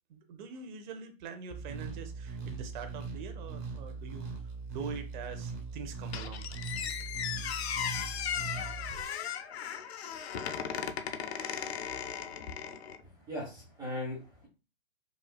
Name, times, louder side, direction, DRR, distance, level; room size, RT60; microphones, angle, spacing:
voice 1, 0.1-4.3 4.7-6.5, right 6 dB, 45° right, 0.7 m, -43 dB
sound 1, 1.5-9.0, right 4 dB, 30° right, 1.4 m, -40 dB
Squeak, 6.1-13.0, left 8 dB, 80° left, 0.6 m, -37 dB
voice 2, 13.2-14.5, left 1 dB, 10° right, 1.2 m, -38 dB
4.9 x 2.5 x 2.3 m
hypercardioid pair, 145°, 32 cm